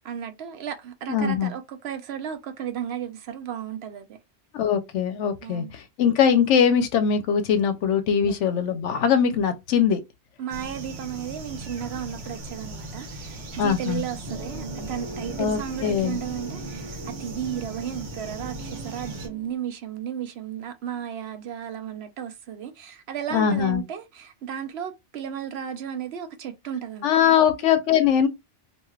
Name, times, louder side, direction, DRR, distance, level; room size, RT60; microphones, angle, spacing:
voice 1, 0.0-4.2 5.4-5.7 8.2-8.4 10.4-27.5, right 9 dB, 65° right, 0.8 m, -34 dB
voice 2, 1.1-1.5 4.5-10.0 13.6-14.0 15.4-16.2 23.3-23.8 27.0-28.3, left 8 dB, 80° left, 0.9 m, -21 dB
sound 1, 10.5-19.3, right 1 dB, 80° right, 1.2 m, -39 dB
sound 2, 14.2-19.6, right 3 dB, 25° left, 0.7 m, -39 dB
2.7 x 2.3 x 3.1 m
omnidirectional pair, 1.2 m